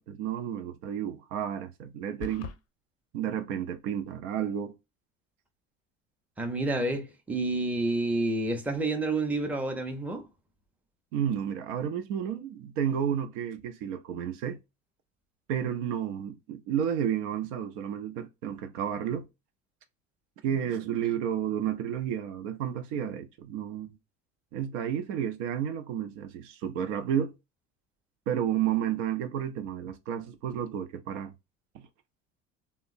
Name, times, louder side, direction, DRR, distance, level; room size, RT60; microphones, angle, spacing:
voice 1, 0.0-2.5 3.1-4.8 11.1-14.6 15.5-19.3 20.4-24.0 24.5-27.4 28.3-31.3 31.7-31.9, right 9 dB, 75° right, 0.6 m, -31 dB
sound 1, 2.2-2.6, left 7 dB, 40° left, 0.5 m, -39 dB
voice 2, 6.4-10.3, right 2 dB, 5° right, 0.6 m, -29 dB
3.0 x 2.0 x 2.4 m
hypercardioid pair, 80°, 37 cm